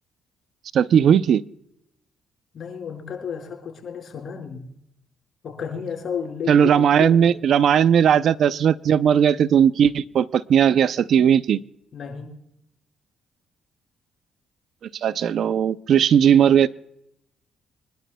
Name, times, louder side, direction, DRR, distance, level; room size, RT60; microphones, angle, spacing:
voice 1, 0.7-1.4 6.5-11.6 15.0-16.7, right 8 dB, 65° right, 15 dB, 0.5 m, -17 dB
voice 2, 2.5-4.7 5.4-7.3 11.9-12.3, left 7 dB, 55° left, 3 dB, 5.0 m, -32 dB
26.0 x 12.0 x 2.2 m, 0.78 s
cardioid pair, 90°, 0 cm